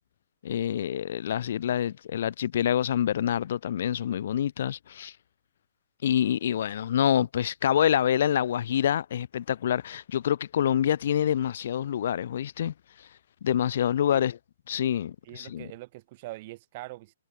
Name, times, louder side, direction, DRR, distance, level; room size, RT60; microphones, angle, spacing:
voice 1, 0.4-5.1 6.0-13.1 13.4-14.4 14.7-15.7, left 10 dB, 50° left, 3.4 m, -26 dB
voice 2, 15.2-17.1, right 19 dB, 40° right, 5.1 m, -43 dB
figure-of-eight pair, 125°, 0 cm